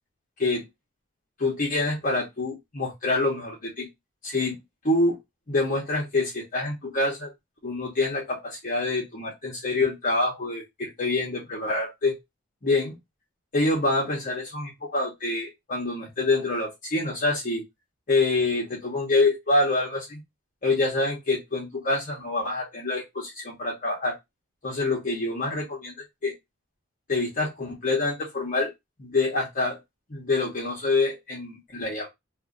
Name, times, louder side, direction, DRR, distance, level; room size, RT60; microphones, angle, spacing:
voice 1, 1.4-3.9 4.2-4.6 4.8-5.2 5.5-7.3 7.6-12.2 12.6-12.9 13.5-17.6 18.1-20.2 20.6-24.2 24.6-25.9 26.2-26.3 27.1-28.7 29.0-29.8 30.1-32.1, left 2 dB, 40° left, -3 dB, 1.0 m, -26 dB
2.6 x 2.5 x 3.6 m, 0.19 s
head